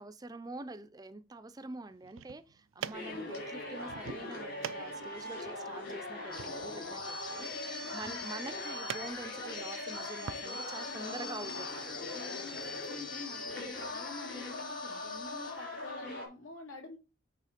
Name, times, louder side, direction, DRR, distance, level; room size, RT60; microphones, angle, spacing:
voice 1, 0.0-11.8, right 2 dB, 20° right, 0.5 m, -46 dB
sound 1, 1.9-10.5, right 7 dB, 85° right, 0.4 m, -47 dB
sound 2, 2.9-16.3, left 2 dB, 60° left, 3.9 m, -41 dB
sound 3, 6.3-15.7, left 4 dB, 25° left, 0.9 m, -45 dB
voice 2, 8.0-8.3 10.9-11.9 12.1-17.0, left 3 dB, 85° left, 2.3 m, -48 dB
9.2 x 3.2 x 5.1 m
head